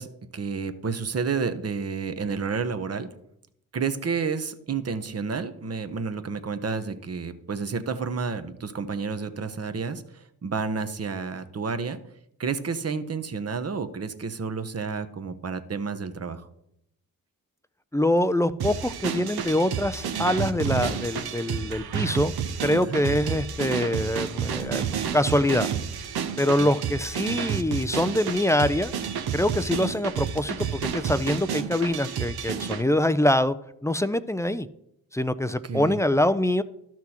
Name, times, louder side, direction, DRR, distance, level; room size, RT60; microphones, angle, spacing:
voice 1, 0.0-3.1 3.7-12.0 12.4-16.4 22.9-23.0 26.6-26.7 35.6-36.0, right 5 dB, 40° right, 11 dB, 0.9 m, -30 dB
voice 2, 17.9-22.3 22.6-25.7 26.4-28.9 29.3-33.6 33.8-34.7 35.1-36.6, left 1 dB, 10° left, 12 dB, 0.4 m, -24 dB
sound 1, 18.6-32.8, right 8 dB, 70° right, 0.8 m, -30 dB
12.5 x 6.0 x 2.9 m, 0.78 s
supercardioid pair, 45°, 39 cm